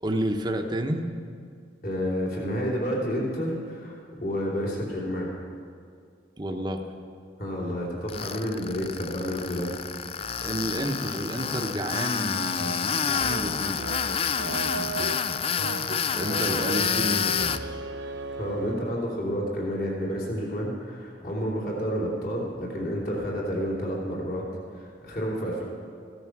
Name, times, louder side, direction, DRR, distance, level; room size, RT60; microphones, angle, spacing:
voice 1, 0.0-1.0 6.4-6.9 10.4-13.8 14.4-15.1 16.0-17.8, right 1 dB, 25° right, 4 dB, 1.0 m, -31 dB
voice 2, 1.8-5.3 7.4-9.7 18.3-24.5 24.7-25.6, equal, 50° left, -4 dB, 3.1 m, -30 dB
Tools, 8.1-17.6, left 7 dB, 30° left, 0.3 m, -29 dB
sound 1, 12.6-19.0, right 3 dB, 80° right, 0.7 m, -36 dB
15.5 x 13.0 x 6.1 m, 2.3 s
head